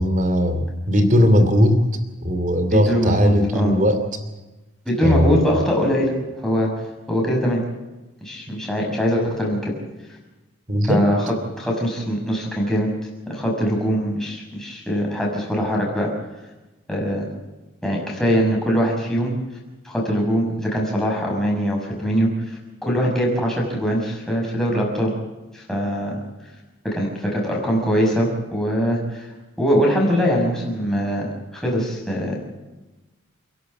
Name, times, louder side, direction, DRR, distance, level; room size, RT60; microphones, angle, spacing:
voice 1, 0.0-1.8 2.2-4.0 5.0-5.5 10.7-11.1, equal, 40° right, 8 dB, 2.8 m, -18 dB
voice 2, 2.7-3.7 4.8-6.1 6.4-6.7 7.1-7.6 8.2-9.7 10.8-12.9 13.3-16.1 16.9-17.3 17.8-19.3 19.8-22.3 22.8-25.1 25.5-26.2 26.8-29.3 29.6-32.4, equal, ahead, -3 dB, 6.0 m, -22 dB
28.5 x 11.5 x 8.7 m, 1.1 s
head